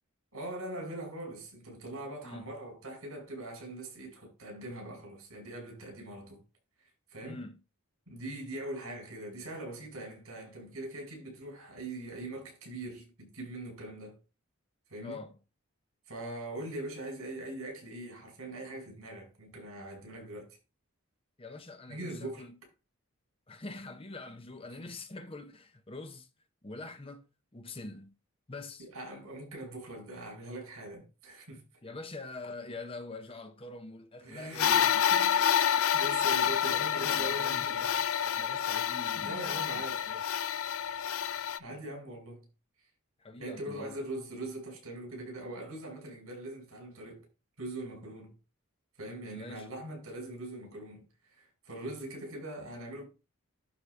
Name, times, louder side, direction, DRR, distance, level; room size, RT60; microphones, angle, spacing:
voice 1, 0.3-6.4 6.8-7.4 8.1-14.2 14.9-15.2 16.1-20.5 21.9-22.5 28.8-31.6 34.2-34.9 35.9-37.8 39.2-40.1 41.6-42.5 43.4-47.3 47.6-48.3 49.0-53.0, right 1 dB, 75° right, 6.2 m, -42 dB
voice 2, 7.2-7.6 15.0-15.4 21.4-22.6 23.5-26.3 26.6-27.3 27.5-28.1 28.5-28.9 31.8-35.9 36.3-40.2 43.2-44.0 49.3-49.7, left 2 dB, 25° left, 0.8 m, -45 dB
sound 1, 34.6-41.6, left 9 dB, 75° left, 0.4 m, -28 dB
11.5 x 4.0 x 4.8 m
head